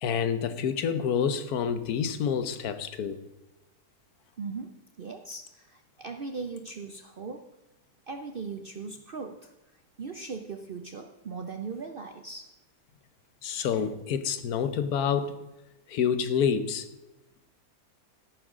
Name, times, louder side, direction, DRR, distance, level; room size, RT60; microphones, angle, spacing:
voice 1, 0.0-3.2 13.4-15.4 15.9-16.9, left 7 dB, 75° left, 1.3 m, -28 dB
voice 2, 4.4-7.5 8.1-12.5, right 4 dB, 50° right, 0.6 m, -39 dB
13.5 x 11.5 x 3.7 m
omnidirectional pair, 1.6 m